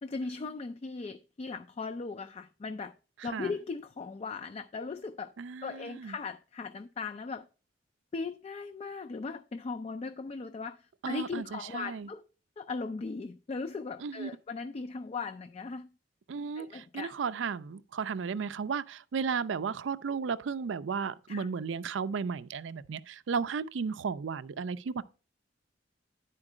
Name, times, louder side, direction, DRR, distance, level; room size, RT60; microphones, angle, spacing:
voice 1, 0.0-2.9 3.2-5.3 5.6-7.5 8.1-12.2 12.6-15.9 16.6-17.1 21.3-21.5, left 4 dB, 35° left, 0.3 m, -38 dB
voice 2, 3.2-3.5 5.4-6.2 11.0-12.1 14.0-14.3 16.3-25.0, right 5 dB, 90° right, 0.4 m, -34 dB
9.8 x 4.5 x 4.8 m
head